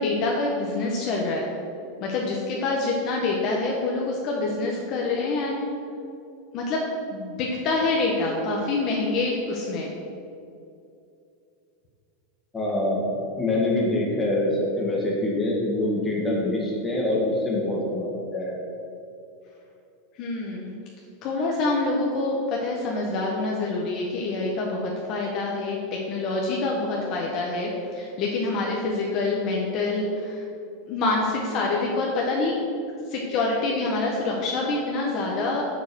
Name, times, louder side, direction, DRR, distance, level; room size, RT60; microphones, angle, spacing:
voice 1, 0.0-1.6 2.0-5.6 6.5-6.8 7.1-9.9 20.1-20.8 21.2-30.5 30.9-32.5 33.1-35.6, left 3 dB, 35° left, -2 dB, 1.2 m, -26 dB
voice 2, 12.5-18.6, left 1 dB, 10° left, -4 dB, 2.0 m, -25 dB
7.5 x 7.1 x 6.3 m, 2.6 s
supercardioid pair, 160°, 0 cm